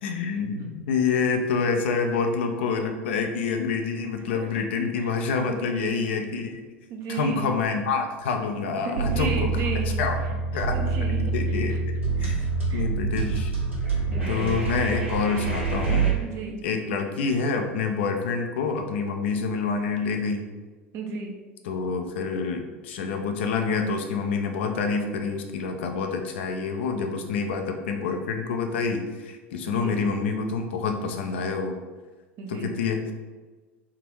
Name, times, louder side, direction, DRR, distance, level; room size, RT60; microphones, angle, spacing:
voice 1, 0.0-6.6 7.1-9.7 10.0-10.8 11.3-11.8 12.2-12.4 12.7-13.5 14.3-16.1 16.6-20.5 21.6-31.8 32.5-33.1, left 5 dB, 70° left, 4 dB, 0.5 m, -27 dB
voice 2, 5.4-6.1 6.9-7.5 8.8-10.0 10.7-11.3 11.7-11.8 12.2-12.4 12.7-12.8 14.1-14.6 16.1-16.6 20.9-21.4 29.8-30.0 32.4-32.7, right 4 dB, 45° right, 3 dB, 0.7 m, -34 dB
sound 1, 9.0-16.1, right 4 dB, 85° right, 1.3 m, -26 dB
3.6 x 2.9 x 4.5 m, 1.3 s
hypercardioid pair, 80°, 6 cm